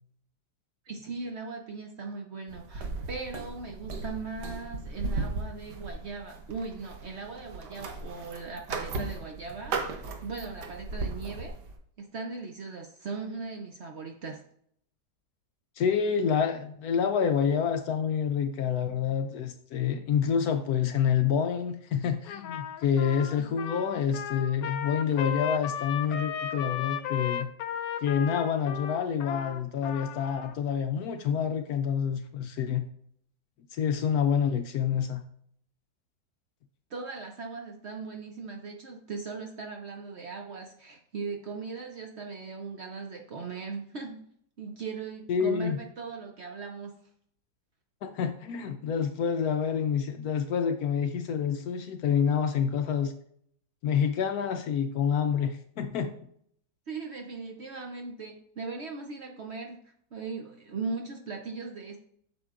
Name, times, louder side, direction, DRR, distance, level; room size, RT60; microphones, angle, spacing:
voice 1, 0.9-11.5 12.0-14.4 36.9-44.2 44.6-46.9 56.9-59.8 60.1-62.0, right 4 dB, 55° right, 2 dB, 0.7 m, -39 dB
sound 1, 2.5-11.7, right 3 dB, 75° right, 1.4 m, -37 dB
voice 2, 15.8-27.5 28.0-32.9 33.7-35.2 45.3-45.8 48.0-53.1 53.8-56.1, left 7 dB, 70° left, 7 dB, 1.0 m, -27 dB
Trumpet, 22.3-30.6, left 9 dB, 85° left, 1.3 m, -35 dB
7.9 x 6.9 x 2.4 m, 0.66 s
omnidirectional pair, 1.9 m